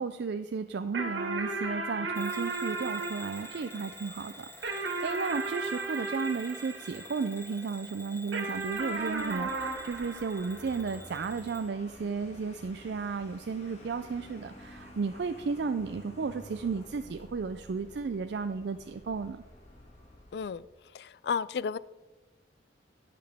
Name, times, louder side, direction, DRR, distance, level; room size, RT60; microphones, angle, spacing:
voice 1, 0.0-19.4, right 5 dB, 65° right, 9 dB, 0.4 m, -34 dB
sound 1, 0.9-7.6 8.3-11.1, right 3 dB, 85° right, 1.8 m, -36 dB
Bell / Alarm, 2.2-11.7, left 1 dB, 15° left, 0.7 m, -49 dB
Vehicle, 8.5-20.7, left 1 dB, 35° left, 1.8 m, -51 dB
voice 2, 20.3-20.6 20.9-21.8, left 6 dB, 60° left, 19 dB, 0.3 m, -32 dB
16.5 x 5.9 x 3.5 m, 1.3 s
head